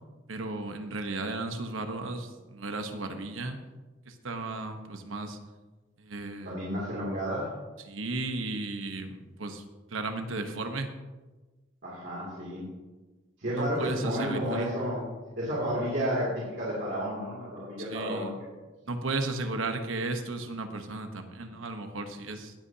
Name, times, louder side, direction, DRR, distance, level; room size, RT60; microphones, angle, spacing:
voice 1, 0.3-3.6 4.1-5.4 6.0-6.5 7.8-9.6 9.9-10.9 13.6-14.7 17.8-18.3 18.9-22.5, right 2 dB, 85° right, 6 dB, 1.1 m, -34 dB
voice 2, 6.4-7.5 11.8-12.7 13.4-15.1 15.4-18.3, equal, 60° right, -7 dB, 2.8 m, -31 dB
17.5 x 8.3 x 2.8 m, 1.2 s
head